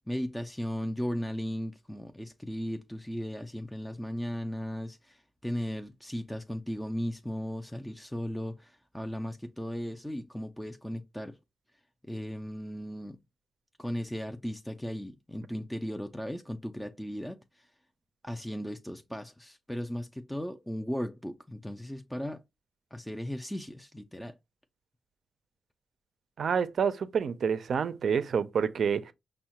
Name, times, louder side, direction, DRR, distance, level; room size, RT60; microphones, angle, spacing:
voice 1, 0.1-11.4 12.1-13.2 13.8-17.7 18.2-22.4 22.9-24.4, equal, 5° left, 0.3 m, -36 dB
voice 2, 26.4-29.1, right 7 dB, 60° right, 0.4 m, -28 dB
5.3 x 2.1 x 2.9 m
cardioid pair, 85°, 0 cm